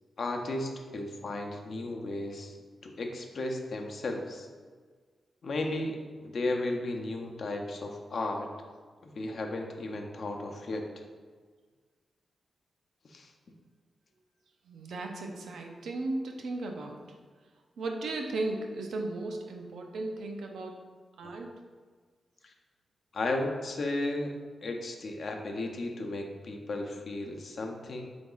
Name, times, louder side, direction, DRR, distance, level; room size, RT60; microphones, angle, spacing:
voice 1, 0.2-2.6 2.8-4.5 5.4-8.5 9.0-10.9 13.0-13.3 21.2-21.3 22.4-22.5 23.1-24.3 24.6-28.0, left 2 dB, 60° left, 2 dB, 0.6 m, -34 dB
voice 2, 14.7-17.0 17.8-20.7 21.2-21.5, right 2 dB, 85° right, 2 dB, 0.6 m, -35 dB
4.0 x 3.4 x 3.8 m, 1.5 s
cardioid pair, 85°, 0 cm